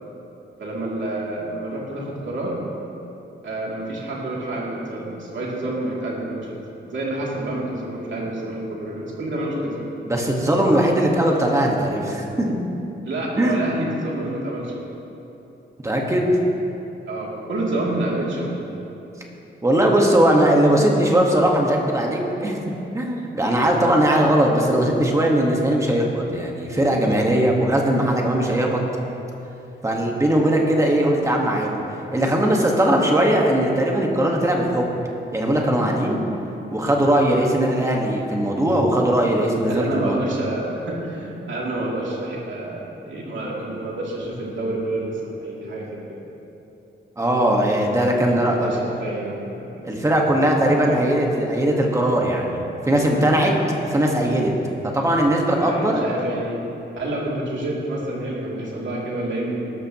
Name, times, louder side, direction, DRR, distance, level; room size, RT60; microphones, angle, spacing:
voice 1, 0.6-2.6 3.4-9.8 13.0-14.9 17.1-18.8 39.7-46.2 48.0-49.9 50.6-51.1 55.4-56.6 57.0-59.6, right 1 dB, 75° right, -4 dB, 2.9 m, -28 dB
voice 2, 10.1-12.5 13.4-13.7 15.8-16.3 19.6-28.8 29.8-31.7 32.1-34.9 35.3-36.2 36.7-40.2 47.2-48.7 49.8-52.6 52.8-53.5 53.8-54.5 54.9-56.0, right 1 dB, 15° right, -1 dB, 1.5 m, -19 dB
18.0 x 13.0 x 3.0 m, 2.9 s
wide cardioid pair, 170°, 20 cm